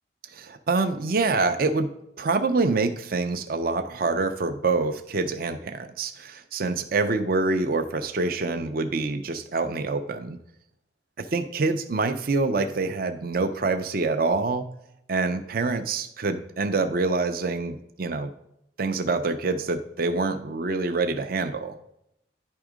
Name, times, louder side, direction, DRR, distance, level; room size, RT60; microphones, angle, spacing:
voice 1, 0.3-1.9 2.2-10.4 11.2-14.7 15.1-18.3 18.8-21.8, right 3 dB, 50° right, 8 dB, 0.5 m, -26 dB
10.0 x 3.5 x 4.9 m, 0.78 s
head